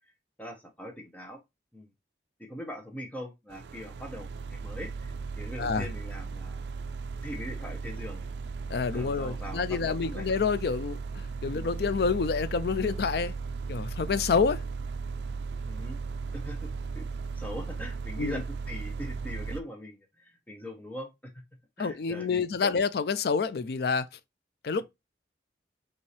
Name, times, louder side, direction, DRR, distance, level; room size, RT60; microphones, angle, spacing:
voice 1, 0.4-1.4 1.7-1.9 2.4-5.1 5.4-6.6 7.2-8.3 8.9-10.3 11.4-11.7 15.7-16.0 16.3-17.0 17.4-21.1 21.8-22.7, equal, 10° left, 0.9 m, -41 dB
sound 1, 3.5-19.6, right 4 dB, 75° right, 0.4 m, -36 dB
voice 2, 8.7-13.4 13.7-14.6 18.2-18.4 21.8-24.1 24.6-24.8, left 5 dB, 60° left, 0.4 m, -28 dB
5.3 x 2.7 x 3.2 m
head